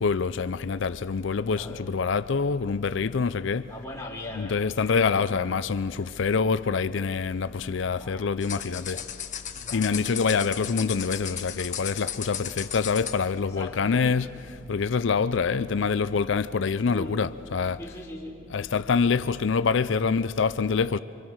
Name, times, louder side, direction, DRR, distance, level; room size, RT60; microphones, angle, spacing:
voice 1, 0.0-3.7 4.3-9.0 9.7-17.8 18.5-21.0, left 5 dB, 65° left, 0.5 m, -26 dB
voice 2, 1.4-1.9 3.7-5.3 7.8-8.3 8.9-9.0 9.5-10.0 12.4-12.6 13.4-14.0 16.9-17.1 17.8-18.4, left 1 dB, 15° left, 3.9 m, -40 dB
sound 1, 8.4-13.2, left 9 dB, 40° left, 1.4 m, -35 dB
27.5 x 25.0 x 6.3 m
head